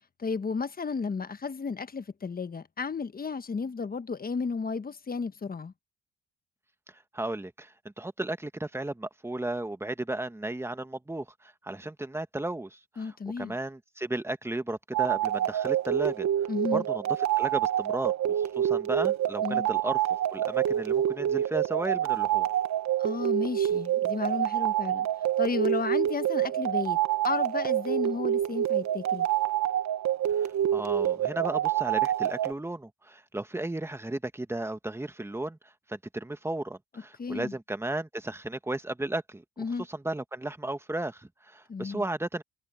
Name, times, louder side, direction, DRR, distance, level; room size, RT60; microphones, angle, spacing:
voice 1, 0.2-5.7 13.0-13.6 16.5-16.8 19.4-19.7 23.0-25.1 25.4-27.0 27.2-29.3 37.2-37.5 39.6-39.8 41.7-42.0, left 5 dB, 30° left, 1.3 m, -33 dB
voice 2, 7.1-16.3 16.7-17.0 17.4-20.0 20.3-22.5 30.4-35.6 35.9-39.4 39.9-42.4, right 2 dB, 10° right, 1.5 m, -34 dB
sound 1, 14.9-32.5, right 11 dB, 65° right, 1.2 m, -27 dB
cardioid pair, 90°, 30 cm